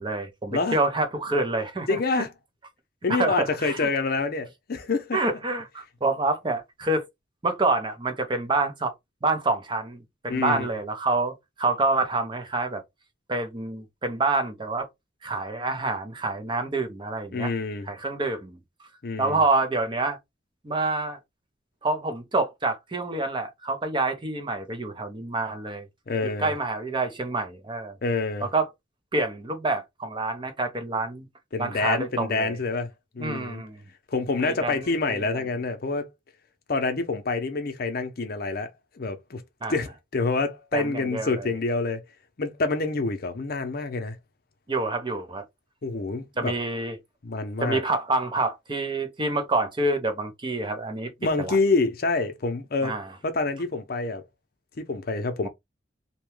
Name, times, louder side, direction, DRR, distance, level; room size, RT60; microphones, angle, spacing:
voice 1, 0.0-2.0 3.1-3.9 5.1-7.1 7.4-8.9 9.2-12.8 13.3-14.9 15.2-17.5 17.9-18.6 19.2-20.2 20.6-21.2 21.8-25.9 26.2-28.0 28.4-28.7 29.1-31.3 31.6-32.6 33.2-33.8 34.4-35.5 39.6-39.7 40.7-41.5 44.7-45.4 46.4-47.0 47.6-51.1 51.4-51.6 52.8-53.0, right 2 dB, 25° right, 0.6 m, -27 dB
voice 2, 1.9-2.3 3.0-5.2 10.3-10.7 17.3-17.9 19.0-19.4 26.1-26.5 28.0-28.5 31.5-33.6 34.1-36.1 36.7-38.7 39.0-39.4 39.7-42.0 42.4-44.2 45.8-46.5 47.2-47.8 51.2-53.0 53.2-54.2 54.8-55.5, left 3 dB, 55° left, 0.6 m, -27 dB
2.8 x 2.2 x 3.1 m
head